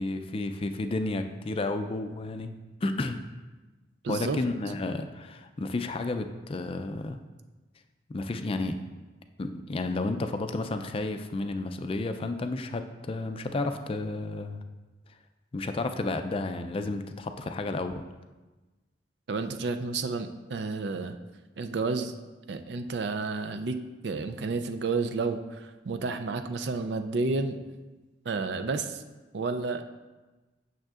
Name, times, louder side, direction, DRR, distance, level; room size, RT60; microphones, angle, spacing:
voice 1, 0.0-2.5 2.8-3.2 4.1-7.2 8.1-8.8 9.4-14.6 15.5-18.0, left 2 dB, 30° left, 8 dB, 0.4 m, -32 dB
voice 2, 4.0-4.4 19.3-21.2 21.6-22.1 22.5-27.6 28.3-29.0 29.3-29.8, right 3 dB, 70° right, 8 dB, 0.4 m, -31 dB
9.0 x 6.4 x 2.4 m, 1.2 s
head